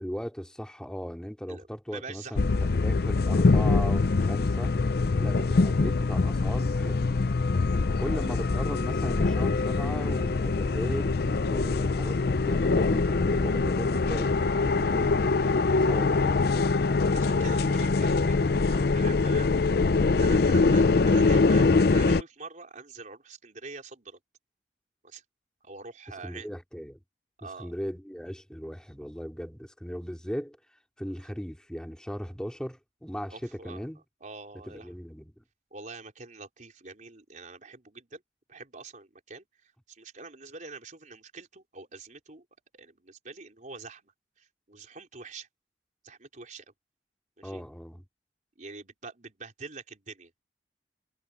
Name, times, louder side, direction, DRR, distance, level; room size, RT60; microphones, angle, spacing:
voice 1, 0.0-4.8 5.2-7.1 8.0-16.5 26.2-27.0 27.6-30.6 31.0-33.4 33.6-34.0 34.7-35.4 47.4-48.0, equal, 5° left, 3.5 m, -37 dB
voice 2, 1.5-2.4 8.2-8.4 17.1-19.5 20.2-24.2 25.0-25.2 25.6-26.5 27.4-27.7 33.3-33.8 34.2-34.9 35.7-38.2 38.5-39.5 39.9-42.4 42.7-44.1 44.4-45.5 46.0-46.7 47.4-47.6 48.6-50.3, right 4 dB, 45° right, 4.3 m, -45 dB
sound 1, 2.4-22.2, left 3 dB, 60° left, 0.5 m, -24 dB
head